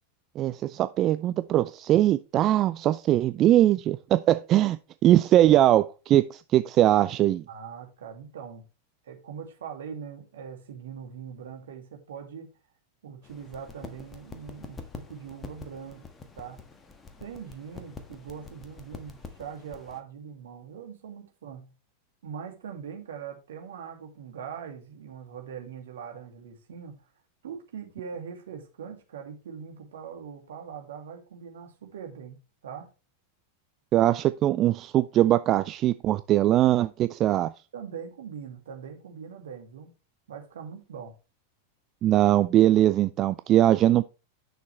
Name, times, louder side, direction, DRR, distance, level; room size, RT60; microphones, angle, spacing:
voice 1, 0.4-4.8 5.0-7.4 33.9-37.5 42.0-44.0, right 13 dB, 35° right, 0.4 m, -21 dB
voice 2, 7.5-8.6 9.0-12.5 13.0-16.0 16.4-16.6 17.2-21.7 22.2-27.0 27.4-32.9 37.7-39.9 40.3-41.1, right 7 dB, 60° right, 2.3 m, -41 dB
sound 1, 13.2-20.0, left 4 dB, 20° left, 1.4 m, -46 dB
10.5 x 6.5 x 3.2 m
figure-of-eight pair, 90°, 0 cm